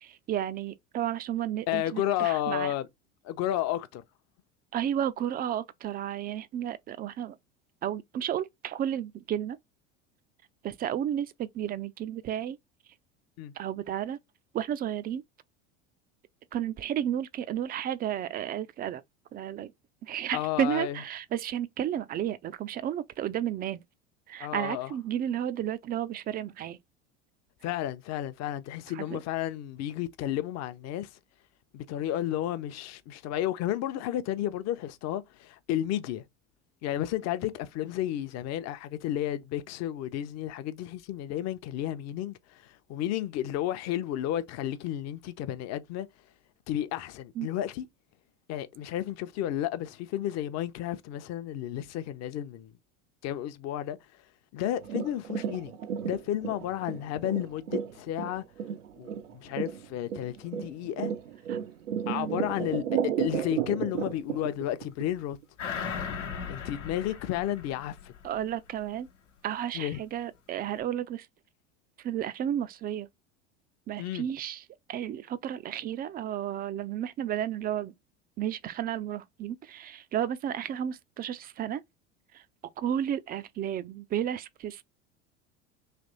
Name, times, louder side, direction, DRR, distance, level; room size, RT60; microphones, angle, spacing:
voice 1, 0.0-2.7 4.7-7.4 7.8-9.6 10.6-12.6 13.6-14.2 14.5-15.2 16.5-19.0 19.3-19.7 20.0-23.8 24.3-26.8 28.9-29.2 47.4-47.5 61.5-61.6 62.1-62.3 68.2-69.1 69.4-71.3 72.0-73.1 73.9-74.6 74.9-77.9 78.4-81.8 82.3-82.4 82.8-84.8, right 10 dB, 25° right, 0.3 m, -32 dB
voice 2, 1.7-2.9 3.2-4.0 13.4-13.5 20.3-21.0 24.4-24.9 27.6-31.1 31.7-36.2 36.8-42.4 42.9-46.1 46.7-47.9 48.5-52.7 53.2-54.0 54.5-55.7 56.0-58.4 59.0-61.1 62.1-65.4 66.5-68.1 69.7-70.0 74.0-74.2, left 12 dB, 45° left, 0.7 m, -32 dB
sound 1, 54.8-65.1 65.4-65.5, right 9 dB, 85° right, 0.6 m, -33 dB
sound 2, 65.6-68.5 68.9-69.0, left 6 dB, 85° left, 1.0 m, -37 dB
3.3 x 2.9 x 4.0 m
hypercardioid pair, 80°, 36 cm